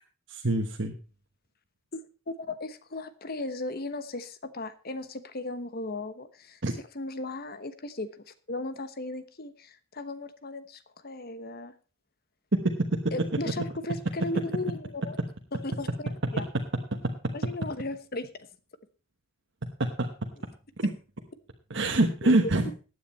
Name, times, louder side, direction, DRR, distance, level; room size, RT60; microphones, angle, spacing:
voice 1, 0.3-0.9 6.6-6.7 12.9-13.0 20.0-20.1 20.8-20.9 21.7-22.7, right 2 dB, 60° right, 2 dB, 1.2 m, -25 dB
voice 2, 1.9-6.6 6.9-11.7 13.1-15.2 15.5-15.9 16.3-16.4 17.3-18.5 22.2-22.7, left 2 dB, 50° left, 13 dB, 1.1 m, -36 dB
15.0 x 9.8 x 4.3 m, 0.35 s
head